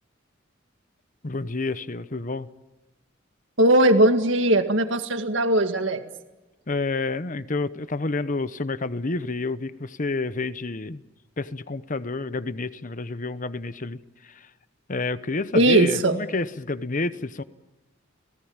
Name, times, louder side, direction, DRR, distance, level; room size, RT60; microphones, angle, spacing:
voice 1, 1.2-2.5 6.7-11.0 11.4-14.5 14.9-17.4, left 3 dB, 45° left, 1.0 m, -29 dB
voice 2, 3.6-6.0 15.5-16.2, right 1 dB, 70° right, 2.0 m, -19 dB
29.5 x 19.0 x 8.9 m
head